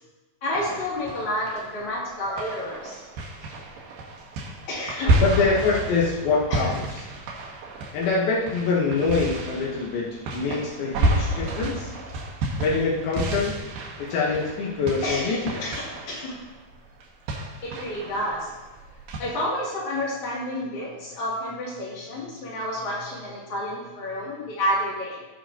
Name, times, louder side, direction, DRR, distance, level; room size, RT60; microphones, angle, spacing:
voice 1, 0.4-3.0 4.7-5.2 6.5-6.7 15.0-16.3 17.6-18.5 19.2-25.2, left 1 dB, 55° left, -6 dB, 3.9 m, -30 dB
sound 1, 0.5-2.0 2.4-19.2, right 1 dB, 75° right, 2.9 m, -30 dB
voice 2, 5.2-6.8 7.9-11.9 12.6-13.6 14.0-15.6, left 4 dB, 85° left, -4 dB, 3.1 m, -25 dB
17.0 x 6.1 x 2.9 m, 1.1 s
omnidirectional pair, 4.1 m